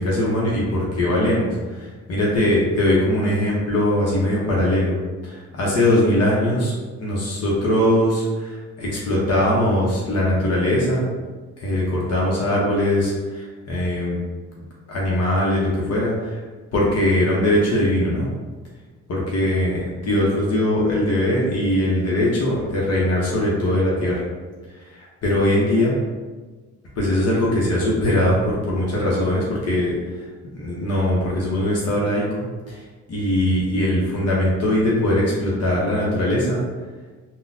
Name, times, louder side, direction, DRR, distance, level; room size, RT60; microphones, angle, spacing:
voice 1, 0.0-5.0 5.2-6.7 7.0-11.0 11.6-14.2 14.6-16.4 16.7-18.3 19.1-24.2 24.9-26.0 27.0-29.9 30.5-32.8 33.1-36.6, left 1 dB, 55° left, -5 dB, 0.9 m, -21 dB
3.7 x 2.2 x 2.6 m, 1.3 s
cardioid pair, 90°, 30 cm